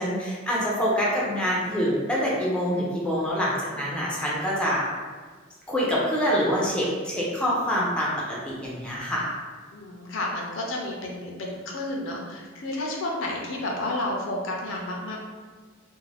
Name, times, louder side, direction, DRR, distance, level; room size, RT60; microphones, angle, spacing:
voice 1, 0.0-4.8 5.7-9.3, equal, 5° left, -6 dB, 0.5 m, -26 dB
voice 2, 9.7-15.2, left 1 dB, 65° left, -1 dB, 0.5 m, -31 dB
2.4 x 2.1 x 3.2 m, 1.5 s
head